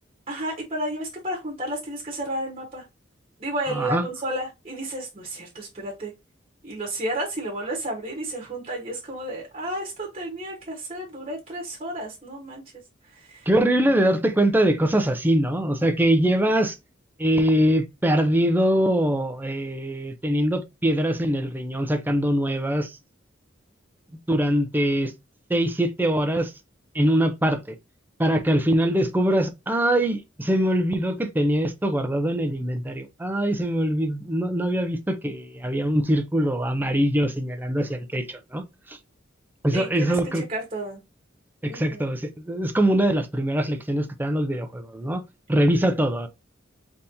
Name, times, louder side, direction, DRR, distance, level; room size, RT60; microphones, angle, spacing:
voice 1, 0.3-2.8 3.4-6.1 6.6-12.6 13.1-13.5 39.7-41.0 41.7-42.0, right 1 dB, 30° right, 1.2 m, -32 dB
voice 2, 3.7-4.0 13.5-16.8 17.2-23.0 24.3-25.1 25.5-26.5 26.9-27.7 28.2-39.0 39.6-40.4 41.6-45.2 45.5-46.3, right 1 dB, 10° right, 0.5 m, -23 dB
4.1 x 3.5 x 2.7 m
head